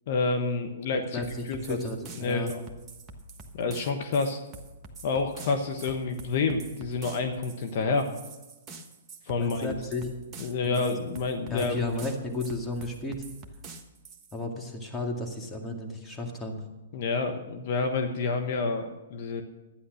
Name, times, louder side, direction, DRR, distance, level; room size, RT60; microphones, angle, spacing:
voice 1, 0.1-1.2 1.5-1.8 2.2-2.6 3.5-4.4 5.0-8.1 9.2-9.7 10.4-11.8 16.9-19.4, left 4 dB, 55° left, 6 dB, 1.2 m, -28 dB
voice 2, 1.1-2.5 9.4-10.1 10.6-11.0 11.5-13.2 14.3-16.6, left 2 dB, 10° left, 0 dB, 2.1 m, -33 dB
sound 1, 1.2-14.4, right 3 dB, 20° right, 1.3 m, -46 dB
12.0 x 9.8 x 6.4 m, 1.1 s
hypercardioid pair, 125°, 0 cm